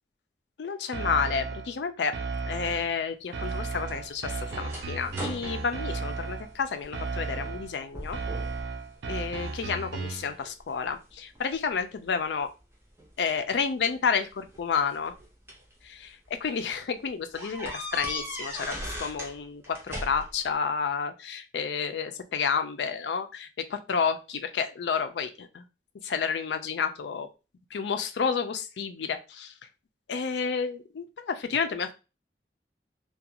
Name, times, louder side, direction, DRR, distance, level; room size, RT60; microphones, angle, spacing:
voice 1, 0.6-2.1 2.5-8.2 9.1-12.5 13.2-15.1 15.8-16.0 16.4-25.6 26.0-27.3 27.7-29.5 30.1-31.9, left 6 dB, 70° left, 8 dB, 0.4 m, -30 dB
sound 1, 0.9-1.7 2.1-2.9 3.3-6.5 6.9-7.7 8.1-10.3, right 4 dB, 75° right, 0.4 m, -34 dB
sound 2, 3.4-6.9 7.3-7.6 7.9-8.6 9.0-9.8 10.4-11.8 13.0-13.1 14.3-15.7 16.2-16.4 16.7-16.8 17.3-19.4 19.6-20.5, equal, 15° right, 0.8 m, -39 dB
2.4 x 2.2 x 2.8 m, 0.29 s
head